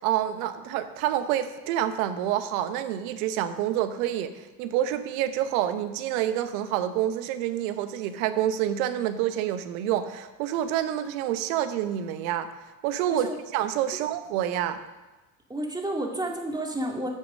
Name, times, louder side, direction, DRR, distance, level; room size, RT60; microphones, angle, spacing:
voice 1, 0.0-12.5 12.8-14.8, right 11 dB, 70° right, 10 dB, 1.0 m, -28 dB
voice 2, 15.5-17.1, right 1 dB, 10° right, 0 dB, 2.2 m, -30 dB
10.5 x 6.2 x 6.3 m, 1.2 s
hypercardioid pair, 70°, 44 cm